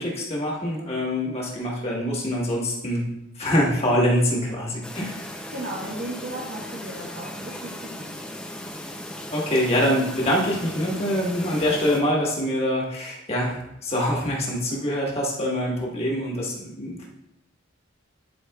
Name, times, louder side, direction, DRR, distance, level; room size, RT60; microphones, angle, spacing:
voice 1, 0.0-3.1 3.4-5.3 9.3-17.1, equal, 30° left, -3 dB, 1.4 m, -25 dB
Chirp tweet, 4.8-12.0, left 1 dB, 5° left, 0.5 m, -37 dB
voice 2, 5.5-8.1, right 1 dB, 60° right, -5 dB, 1.2 m, -35 dB
10.5 x 4.7 x 2.3 m, 0.86 s
head